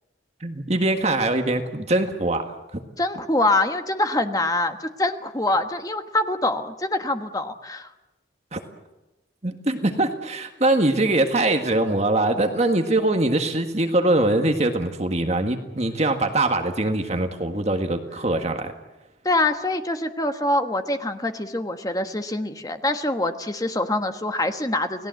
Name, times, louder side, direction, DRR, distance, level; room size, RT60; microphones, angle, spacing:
voice 1, 0.4-2.8 8.5-8.6 9.4-18.7, right 2 dB, 35° right, 5 dB, 1.7 m, -22 dB
voice 2, 3.0-7.9 19.2-25.1, left 2 dB, 20° left, 7 dB, 1.4 m, -24 dB
29.0 x 19.0 x 7.8 m, 1.0 s
head